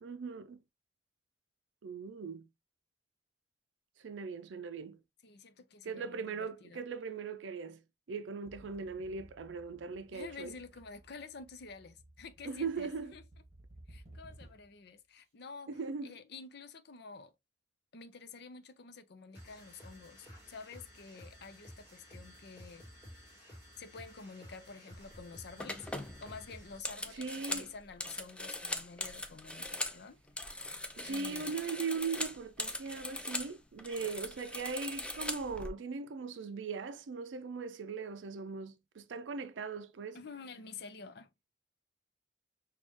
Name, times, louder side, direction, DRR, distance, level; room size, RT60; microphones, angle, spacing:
voice 1, 0.0-0.6 1.8-2.4 4.0-5.0 5.8-7.8 8.1-10.5 12.5-13.1 15.7-16.1 27.1-27.7 31.0-40.2, right 5 dB, 90° right, 0.4 m, -39 dB
voice 2, 5.2-6.8 10.1-13.2 13.9-17.3 17.9-22.8 23.8-25.9 26.2-30.5 31.0-31.7 40.1-41.3, left 4 dB, 60° left, 0.6 m, -50 dB
sound 1, 8.5-14.8, right 1 dB, 35° right, 1.5 m, -57 dB
sound 2, 19.3-26.9, equal, 15° right, 2.8 m, -53 dB
sound 3, 25.0-25.2 25.6-30.0 30.3-33.5 33.8-35.7, left 1 dB, 5° left, 0.5 m, -40 dB
6.3 x 2.4 x 2.8 m
head